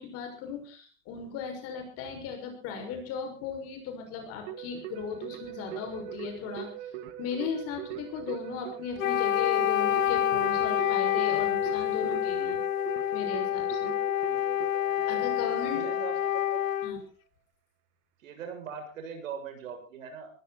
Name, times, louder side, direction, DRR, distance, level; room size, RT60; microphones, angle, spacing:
voice 1, 0.0-6.7 7.2-12.6 13.1-13.9 15.1-15.9 16.8-17.0, left 6 dB, 35° left, 4 dB, 6.2 m, -37 dB
Keyboard (musical), 4.5-16.9, right 11 dB, 45° right, 1.9 m, -42 dB
Wind instrument woodwind instrument, 9.0-17.0, left 12 dB, 85° left, 1.4 m, -28 dB
voice 2, 14.2-14.6 15.7-16.7 18.2-20.3, right 7 dB, 80° right, 4 dB, 7.5 m, -41 dB
20.0 x 15.5 x 4.3 m, 0.37 s
supercardioid pair, 150°, 39 cm